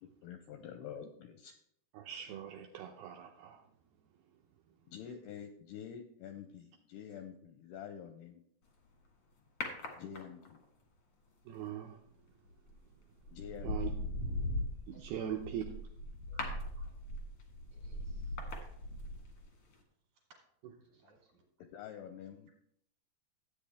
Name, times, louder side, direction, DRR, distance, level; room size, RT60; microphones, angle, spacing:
voice 1, 0.0-1.6 4.9-8.4 10.0-10.6 13.3-14.0 21.7-22.5, left 8 dB, 80° left, 7 dB, 2.3 m, -47 dB
voice 2, 1.9-3.6 11.5-12.0 13.6-13.9 14.9-15.6, right 10 dB, 80° right, 2 dB, 2.3 m, -41 dB
sound 1, 9.6-10.6 12.5-12.8 13.3-19.5 19.7-19.8, left 1 dB, 65° left, 1.3 m, -39 dB
voice 3, 14.9-15.3 16.3-16.5 16.8-17.0 17.7-18.4 20.9-21.4, right 3 dB, 50° right, 1 dB, 2.7 m, -64 dB
13.0 x 8.5 x 3.5 m, 0.70 s
omnidirectional pair, 5.2 m